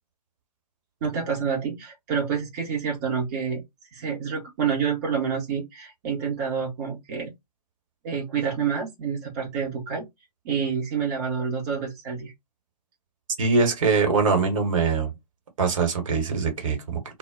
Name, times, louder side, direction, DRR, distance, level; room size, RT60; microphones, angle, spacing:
voice 1, 1.0-3.6 3.9-7.3 8.0-10.1 10.4-12.3, right 6 dB, 25° right, 0.6 m, -28 dB
voice 2, 13.4-15.1 15.6-17.2, right 4 dB, 50° right, 1.0 m, -23 dB
2.1 x 2.0 x 3.5 m
figure-of-eight pair, 125°, 21 cm